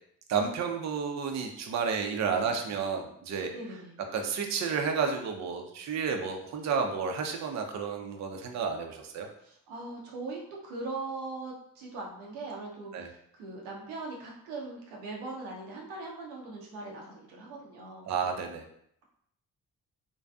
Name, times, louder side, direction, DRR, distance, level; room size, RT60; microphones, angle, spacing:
voice 1, 0.3-3.5 4.1-9.3 12.9-13.1 18.1-18.6, right 6 dB, 40° right, 4 dB, 0.5 m, -31 dB
voice 2, 2.2-2.5 3.5-4.0 9.4-18.1, right 3 dB, 85° right, -2 dB, 0.6 m, -40 dB
2.5 x 2.3 x 2.3 m, 0.71 s
hypercardioid pair, 40°, 45 cm